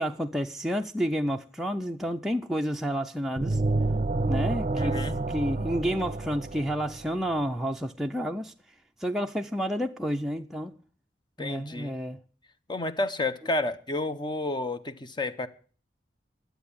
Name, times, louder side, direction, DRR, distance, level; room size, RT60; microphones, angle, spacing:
voice 1, 0.0-3.6 4.3-8.5 9.0-10.7 11.4-12.2, equal, ahead, 0.5 m, -30 dB
sound 1, 3.4-7.2, right 2 dB, 40° right, 0.7 m, -29 dB
voice 2, 4.8-5.2 11.4-11.9 12.7-15.5, left 2 dB, 25° left, 0.8 m, -30 dB
11.5 x 8.0 x 8.5 m
head